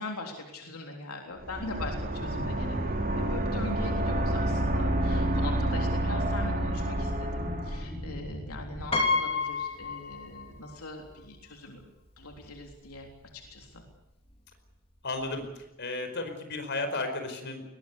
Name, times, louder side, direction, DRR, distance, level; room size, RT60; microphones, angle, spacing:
voice 1, 0.0-13.1 13.3-13.8, left 2 dB, 85° left, 2 dB, 3.5 m, -41 dB
sound 1, 1.4-7.9, right 1 dB, 40° right, 3.4 m, -29 dB
sound 2, 1.8-8.9, equal, ahead, 4.2 m, -38 dB
Piano, 8.9-10.7 11.1-11.2 12.3-12.4 12.7-13.0, left 3 dB, 25° left, 3.4 m, -29 dB
voice 2, 15.0-17.6, left 2 dB, 55° left, 6 dB, 4.9 m, -34 dB
21.5 x 19.5 x 8.3 m, 0.90 s
head